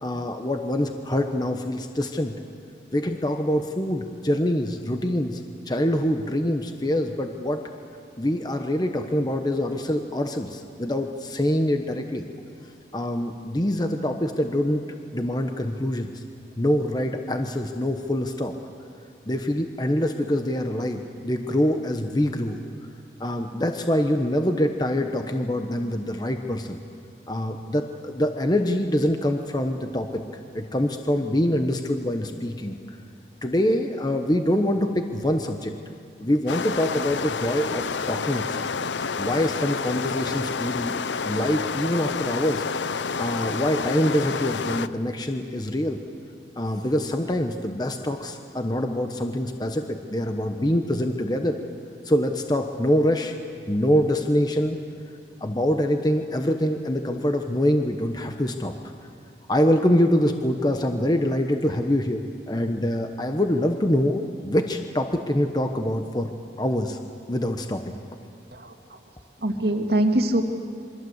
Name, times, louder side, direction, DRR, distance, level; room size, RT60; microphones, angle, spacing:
voice 1, 0.0-2.4 2.9-7.6 8.2-12.3 12.9-14.8 15.1-16.2 16.6-18.5 19.3-22.6 23.2-26.8 27.3-30.2 30.5-33.0 33.4-35.7 36.2-38.7 39.2-40.9 41.2-42.7 43.2-46.0 46.6-51.6 52.0-53.4 53.7-54.8 55.4-58.7 59.5-66.3 66.6-67.0 67.3-67.8, left 1 dB, 25° left, 5 dB, 1.1 m, -25 dB
sound 1, 36.5-44.9, left 5 dB, 90° left, 0.7 m, -29 dB
voice 2, 68.5-69.0 69.4-70.4, right 1 dB, 65° right, 3 dB, 2.3 m, -23 dB
28.0 x 24.0 x 8.1 m, 2.4 s
head